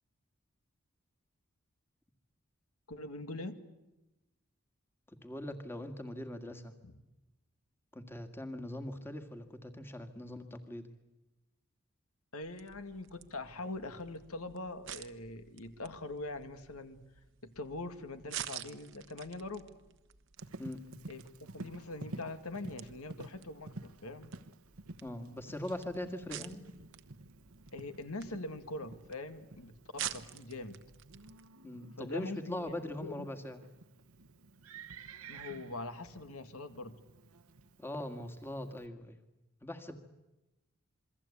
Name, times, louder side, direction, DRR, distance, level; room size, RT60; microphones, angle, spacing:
voice 1, 2.9-3.6 6.8-6.9 12.3-17.0 17.4-19.7 21.1-24.3 27.7-30.8 32.0-33.3 35.3-37.0, left 2 dB, 80° left, 9 dB, 2.2 m, -43 dB
voice 2, 5.1-6.7 7.9-10.9 20.6-20.8 25.0-26.6 31.6-33.6 37.8-39.2 39.6-39.9, left 1 dB, 10° left, 7 dB, 1.9 m, -41 dB
sound 1, 12.4-31.5, right 10 dB, 55° right, 1.1 m, -49 dB
Livestock farm animals working animals, 20.4-38.9, right 3 dB, 80° right, 1.2 m, -52 dB
28.0 x 23.0 x 8.5 m, 0.98 s
head